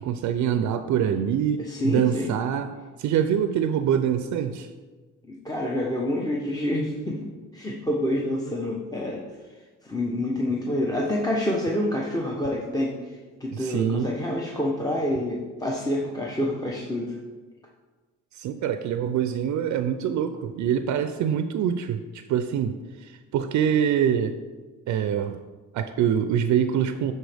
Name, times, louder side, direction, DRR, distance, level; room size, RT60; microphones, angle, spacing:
voice 1, 0.0-2.7 3.0-4.7 13.5-14.1 18.3-24.4 24.9-25.4 25.7-27.1, right 9 dB, 70° right, 9 dB, 0.5 m, -25 dB
voice 2, 1.6-2.3 5.2-9.2 9.8-17.2, left 1 dB, 10° left, -2 dB, 0.9 m, -27 dB
11.0 x 4.3 x 3.4 m, 1.3 s
cardioid pair, 90°, 30 cm